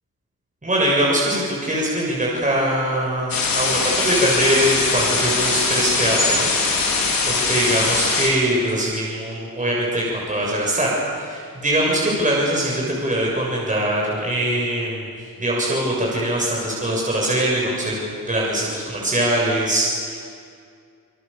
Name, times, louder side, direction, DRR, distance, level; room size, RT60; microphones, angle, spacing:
voice 1, 0.6-20.2, right 1 dB, 25° right, -4 dB, 6.9 m, -22 dB
sound 1, 3.3-8.3, left 4 dB, 85° left, 5.4 m, -21 dB
27.0 x 23.0 x 7.1 m, 2.3 s
cardioid pair, 95°, 34 cm